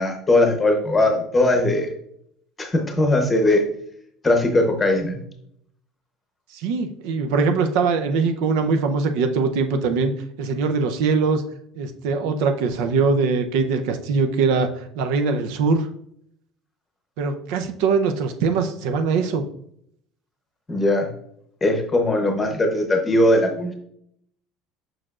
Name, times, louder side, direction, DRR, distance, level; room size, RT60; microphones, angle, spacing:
voice 1, 0.0-1.9 2.6-3.6 4.2-5.2 20.7-21.1 21.6-23.8, left 1 dB, 10° left, 4 dB, 0.8 m, -19 dB
voice 2, 6.5-10.1 10.4-11.4 11.8-15.9 17.2-19.4, right 4 dB, 70° right, 6 dB, 0.6 m, -22 dB
6.7 x 6.1 x 2.5 m, 0.70 s
cardioid pair, 175°, 0 cm